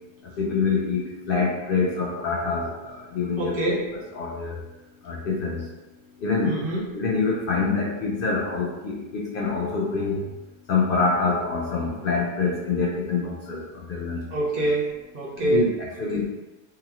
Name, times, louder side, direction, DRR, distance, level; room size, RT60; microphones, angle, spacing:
voice 1, 0.4-3.7 4.1-4.6 5.0-5.7 6.2-6.5 6.9-10.3 10.7-14.4 15.4-16.3, left 4 dB, 60° left, -3 dB, 0.7 m, -26 dB
voice 2, 3.4-3.9 6.4-6.9 14.3-15.7 16.1-16.2, right 2 dB, 55° right, -6 dB, 1.0 m, -26 dB
2.8 x 2.8 x 2.4 m, 1.1 s
omnidirectional pair, 1.2 m